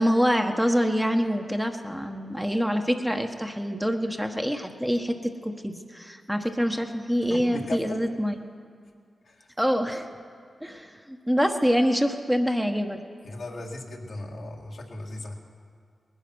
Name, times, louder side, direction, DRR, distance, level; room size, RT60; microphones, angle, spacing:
voice 1, 0.0-8.4 9.6-10.1 10.6-13.0, equal, 5° right, 4 dB, 1.2 m, -25 dB
voice 2, 7.2-8.1 9.2-9.5 13.2-15.4, left 2 dB, 70° left, 0 dB, 2.0 m, -37 dB
19.5 x 10.5 x 6.3 m, 2.1 s
supercardioid pair, 40°, 0 cm